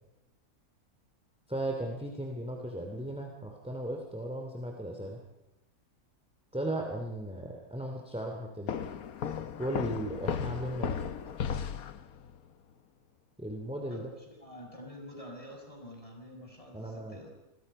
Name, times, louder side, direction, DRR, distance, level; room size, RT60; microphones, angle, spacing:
voice 1, 1.5-5.2 6.5-8.7 9.6-11.0 13.4-14.1 16.7-17.2, right 1 dB, 5° right, 1 dB, 2.7 m, -36 dB
sound 1, 8.7-12.4, left 7 dB, 70° left, 1.5 m, -35 dB
voice 2, 13.9-17.3, left 1 dB, 20° left, 0 dB, 6.3 m, -47 dB
28.5 x 22.0 x 5.5 m, 0.93 s
omnidirectional pair, 1.6 m